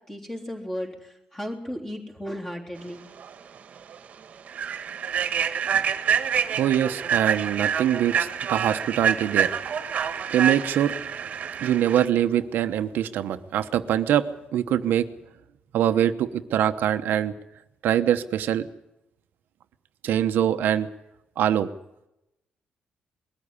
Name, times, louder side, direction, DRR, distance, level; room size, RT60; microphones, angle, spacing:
voice 1, 0.1-3.1, equal, 10° left, 0 dB, 3.6 m, -35 dB
Human voice / Train, 3.2-3.3 3.8-4.0 4.5-12.1, right 8 dB, 45° right, 1.5 m, -27 dB
voice 2, 6.4-9.5 10.3-10.9 11.6-14.3 14.5-15.1 15.7-17.3 17.8-18.7 20.0-20.9 21.4-21.7, right 10 dB, 70° right, 9 dB, 1.0 m, -23 dB
21.5 x 14.0 x 9.9 m, 0.90 s
cardioid pair, 170°, 3 cm